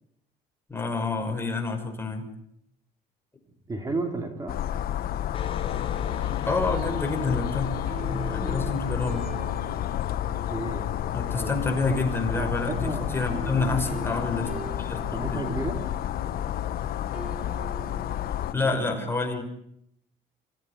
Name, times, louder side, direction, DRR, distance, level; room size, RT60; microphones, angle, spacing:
voice 1, 0.7-2.3 6.5-7.7 8.0-9.3 11.1-15.5 18.5-19.4, left 3 dB, 15° left, 3 dB, 6.0 m, -28 dB
voice 2, 3.7-4.5 10.5-10.9 11.3-11.5 11.9-12.0 12.3-13.1 13.5-13.8 15.1-15.8, right 2 dB, 20° right, 4 dB, 3.0 m, -32 dB
sound 1, 4.5-18.5, left 12 dB, 65° left, 1.0 m, -30 dB
Electric guitar, 5.3-10.8, left 3 dB, 30° left, 4.2 m, -42 dB
sound 2, 6.6-18.5, right 6 dB, 50° right, 3.4 m, -43 dB
26.0 x 16.0 x 9.9 m, 0.76 s
cardioid pair, 110°, 17 cm